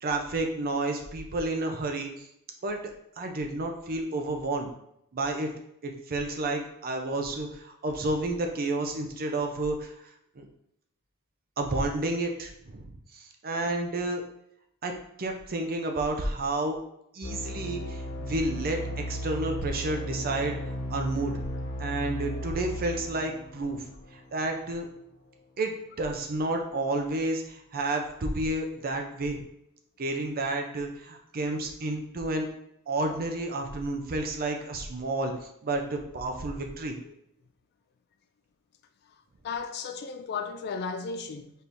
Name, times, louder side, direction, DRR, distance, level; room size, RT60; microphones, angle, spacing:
voice 1, 0.0-2.3 2.6-2.8 3.2-4.7 5.1-5.5 5.8-9.9 10.4-10.5 11.6-14.2 14.8-14.9 15.2-16.8 17.1-20.6 20.9-21.3 21.8-23.8 24.1-24.9 25.6-29.4 30.0-32.5 32.9-35.3 35.6-37.0, right 2 dB, 40° right, 0.5 m, -30 dB
sound 1, 17.2-24.7, equal, 85° left, 1.4 m, -36 dB
voice 2, 39.4-41.5, left 5 dB, 45° left, 0.3 m, -34 dB
4.3 x 3.4 x 2.6 m
head